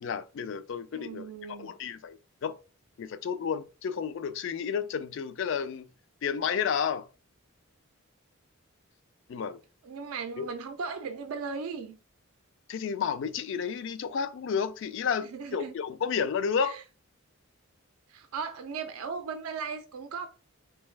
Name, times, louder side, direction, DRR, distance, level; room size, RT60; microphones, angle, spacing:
voice 1, 0.0-1.3 1.6-2.6 3.0-5.9 6.2-7.1 9.3-9.6 10.4-10.5 12.7-16.8, left 6 dB, 60° left, 0.3 m, -31 dB
voice 2, 0.9-1.7 9.8-11.9 15.2-15.7 16.6-16.8 18.1-20.3, right 5 dB, 85° right, 0.4 m, -37 dB
3.8 x 2.2 x 3.1 m
head